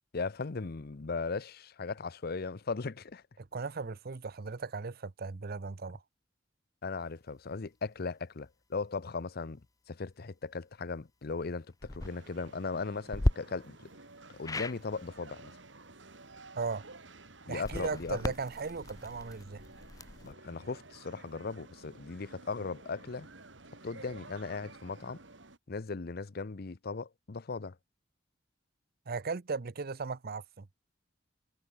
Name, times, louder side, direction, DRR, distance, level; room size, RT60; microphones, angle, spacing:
voice 1, 0.1-3.2 6.8-9.6 9.9-13.9 14.4-15.5 17.5-18.2 20.2-23.3 23.8-25.2 25.7-27.8, left 4 dB, 55° left, 0.7 m, -38 dB
voice 2, 3.4-6.0 16.6-16.9 17.5-19.6 29.1-30.7, right 4 dB, 55° right, 0.7 m, -37 dB
sound 1, 11.7-12.1 13.1-13.3 14.4-14.8 17.5-20.3, left 1 dB, 20° left, 0.6 m, -34 dB
sound 2, 12.0-25.6, right 3 dB, 80° right, 3.7 m, -53 dB
head